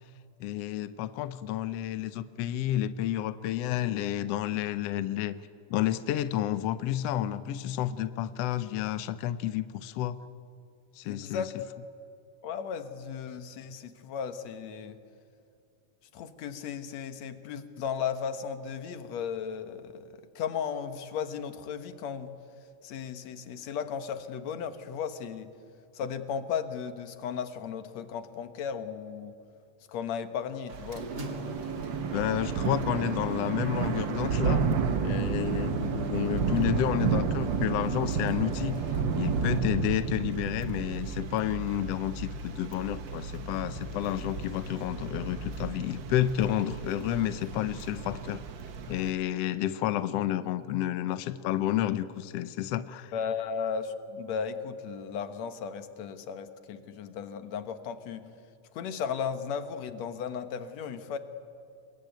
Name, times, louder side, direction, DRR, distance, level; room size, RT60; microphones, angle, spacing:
voice 1, 0.4-5.3 5.7-10.2 11.0-11.4 32.1-34.6 35.0-38.8 39.2-48.4 48.9-53.1, left 12 dB, 80° left, 13 dB, 1.4 m, -30 dB
voice 2, 11.0-11.5 12.4-15.0 16.1-22.4 22.8-25.5 25.9-29.4 29.9-31.1 53.1-58.3 58.7-61.2, left 7 dB, 60° left, 10 dB, 2.2 m, -35 dB
sound 1, 30.7-39.6, right 5 dB, 30° right, 2.6 m, -37 dB
Thunder / Rain, 30.7-49.1, right 5 dB, 65° right, 1.2 m, -32 dB
26.5 x 22.0 x 9.3 m, 2.4 s
omnidirectional pair, 3.8 m